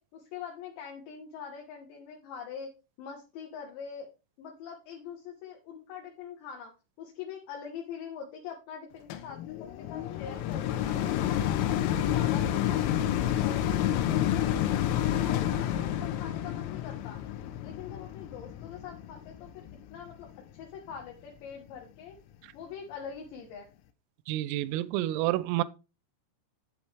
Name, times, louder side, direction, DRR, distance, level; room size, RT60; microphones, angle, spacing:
voice 1, 0.0-2.7 3.0-4.1 4.4-6.7 7.0-13.1 13.4-17.2 17.6-22.1 22.5-23.7, left 7 dB, 70° left, 3.2 m, -43 dB
sound 1, 9.1-20.4 21.0-21.1, left 11 dB, 90° left, 3.4 m, -29 dB
voice 2, 24.3-25.6, right 15 dB, 85° right, 3.1 m, -29 dB
8.5 x 8.2 x 3.4 m
omnidirectional pair, 5.9 m